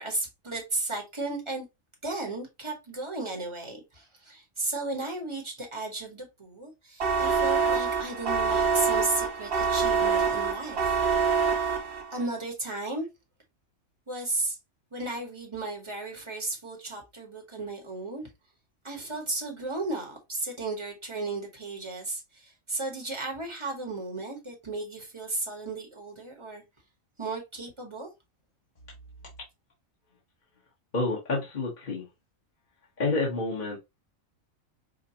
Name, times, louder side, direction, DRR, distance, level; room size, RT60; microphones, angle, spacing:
voice 1, 0.0-1.6 2.0-11.0 12.1-13.1 14.1-14.6 14.9-18.3 18.8-26.6 27.2-28.1, right 2 dB, 25° right, 1.0 m, -34 dB
sound 1, 7.0-12.3, right 5 dB, 55° right, 1.1 m, -26 dB
voice 2, 30.9-32.1 33.0-33.8, left 3 dB, 35° left, 1.2 m, -28 dB
5.1 x 2.2 x 2.7 m
omnidirectional pair, 1.5 m